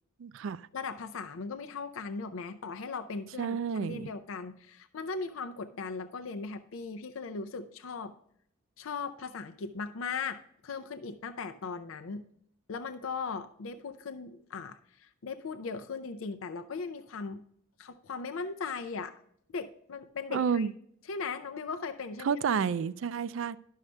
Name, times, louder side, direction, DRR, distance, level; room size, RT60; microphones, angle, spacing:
voice 1, 0.2-0.7 3.4-4.1 20.3-20.7 22.2-23.6, right 6 dB, 70° right, 0.4 m, -30 dB
voice 2, 0.7-8.1 8.8-12.2 12.7-17.4 17.8-19.1 19.5-20.7 21.1-22.7, left 4 dB, 75° left, 0.5 m, -38 dB
12.0 x 6.4 x 3.2 m
head